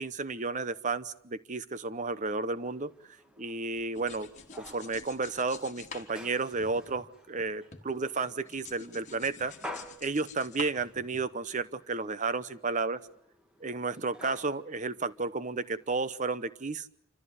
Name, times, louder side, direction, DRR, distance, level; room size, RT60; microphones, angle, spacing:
voice 1, 0.0-2.9 3.4-4.3 4.6-9.5 10.0-13.0 13.6-16.9, right 3 dB, 35° right, 14 dB, 0.8 m, -32 dB
sound 1, 2.6-16.3, left 1 dB, 5° right, 1.6 m, -51 dB
sound 2, 3.7-7.5 7.7-11.5, left 5 dB, 35° left, 1.7 m, -48 dB
27.5 x 14.0 x 9.6 m, 0.73 s
head